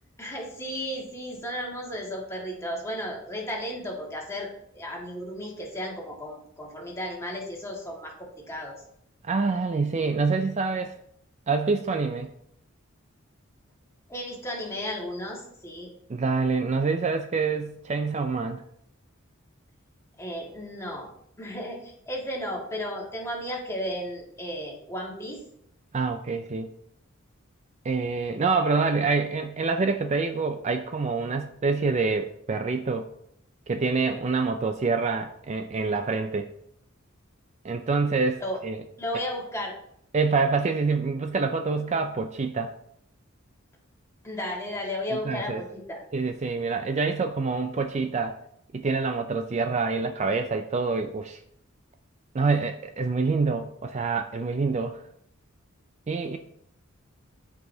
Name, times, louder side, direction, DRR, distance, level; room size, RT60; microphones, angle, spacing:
voice 1, 0.2-8.8 14.1-15.9 20.2-21.1 21.4-25.4 38.4-38.6 39.0-39.8 44.2-46.0, equal, 15° left, -2 dB, 1.7 m, -34 dB
voice 2, 9.2-11.0 11.5-12.3 16.1-18.6 25.9-26.7 27.8-33.1 33.7-36.5 37.6-38.8 40.1-42.7 45.1-45.6 46.1-48.4 48.7-51.4 52.3-55.0 56.1-56.4, right 4 dB, 35° right, 6 dB, 0.4 m, -26 dB
12.5 x 4.8 x 2.7 m, 0.72 s
head